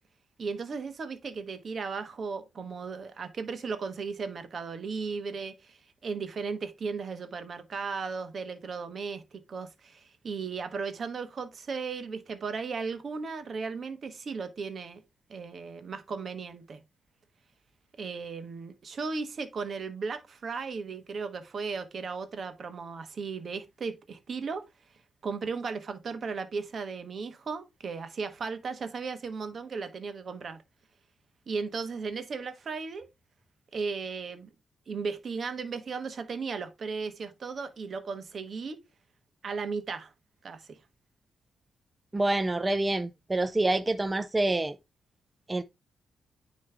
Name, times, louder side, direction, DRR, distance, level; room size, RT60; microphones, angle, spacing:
voice 1, 0.4-9.2 9.5-15.0 15.3-16.8 18.0-24.6 25.2-30.6 31.5-33.1 33.7-34.5 34.9-38.8 39.4-40.1 40.4-40.8, right 5 dB, 55° right, 1.3 m, -36 dB
voice 2, 42.1-44.8 45.5-45.6, right 2 dB, 20° right, 0.6 m, -27 dB
9.5 x 3.2 x 3.4 m
cardioid pair, 65°, 0 cm